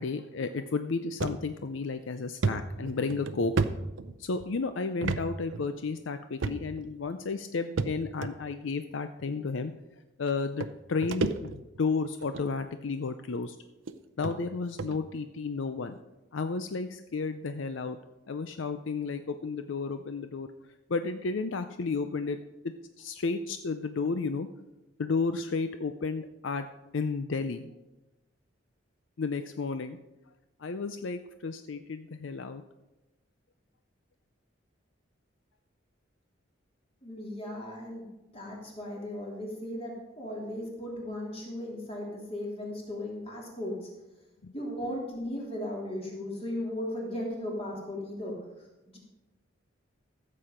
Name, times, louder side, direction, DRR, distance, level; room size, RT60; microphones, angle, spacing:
voice 1, 0.0-3.5 4.2-9.7 10.2-13.6 14.2-16.0 16.3-18.0 18.3-20.5 20.9-22.4 22.6-24.5 25.0-26.7 26.9-27.7 29.2-30.0 30.6-32.6 44.4-44.5, left 4 dB, 70° left, 9 dB, 0.5 m, -32 dB
sound 1, 1.2-1.4 1.8-1.9 2.4-4.5 5.0-5.2 5.5-5.6 6.4-6.9 7.8-8.3 9.2-9.3 10.3-10.4 10.6-11.8 12.2-12.5 13.3-13.4 13.9-14.0 14.2-14.4 14.8-15.0, right 4 dB, 75° right, 0.6 m, -31 dB
voice 2, 37.0-38.1 38.3-43.9 44.5-49.0, left 1 dB, 30° left, -2 dB, 3.1 m, -37 dB
14.0 x 7.6 x 5.1 m, 1.0 s
head